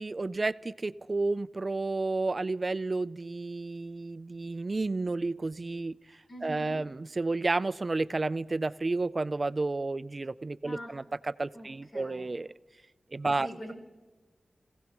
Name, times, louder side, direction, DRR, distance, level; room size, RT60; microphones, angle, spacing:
voice 1, 0.0-6.0 6.4-12.5 13.1-13.7, right 3 dB, 45° right, 15 dB, 0.4 m, -31 dB
voice 2, 6.3-6.8 10.6-10.9 11.5-12.3 13.4-13.7, equal, 85° left, -1 dB, 5.2 m, -44 dB
28.5 x 16.5 x 3.0 m, 1.3 s
wide cardioid pair, 70°, 0 cm